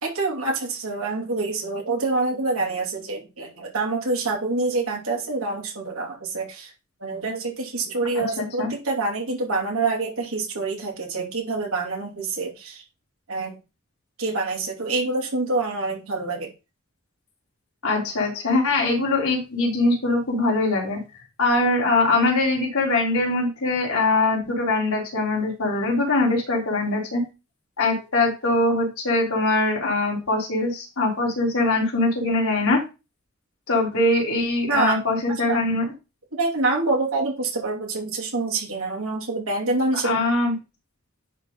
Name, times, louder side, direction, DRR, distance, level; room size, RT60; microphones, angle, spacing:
voice 1, 0.0-6.7 7.0-12.8 13.3-13.6 14.2-16.5 34.7-35.0 35.5-35.6 36.3-40.2, right 3 dB, 75° right, -1 dB, 2.8 m, -26 dB
voice 2, 8.2-8.7 17.8-21.0 21.4-27.2 27.8-32.8 33.7-35.8 40.0-40.5, left 2 dB, 80° left, -3 dB, 3.5 m, -22 dB
10.5 x 3.9 x 3.9 m, 0.28 s
head